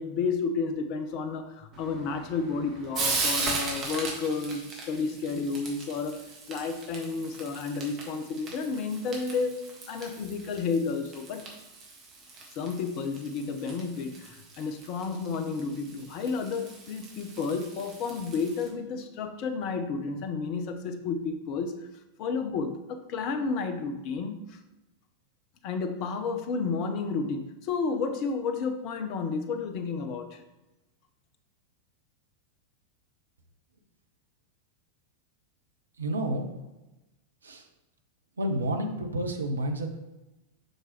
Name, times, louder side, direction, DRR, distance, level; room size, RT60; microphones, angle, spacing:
voice 1, 0.0-6.2 6.5-9.6 9.9-11.4 12.6-21.7 22.2-24.6 25.6-30.4, left 4 dB, 40° left, 9 dB, 0.7 m, -31 dB
Frying (food), 1.7-18.7, right 3 dB, 30° right, 1.7 m, -38 dB
voice 2, 36.0-36.5 37.4-37.7 38.4-39.9, right 1 dB, 75° right, 4 dB, 0.7 m, -30 dB
6.4 x 6.0 x 3.1 m, 1.0 s
figure-of-eight pair, 90°, 0 cm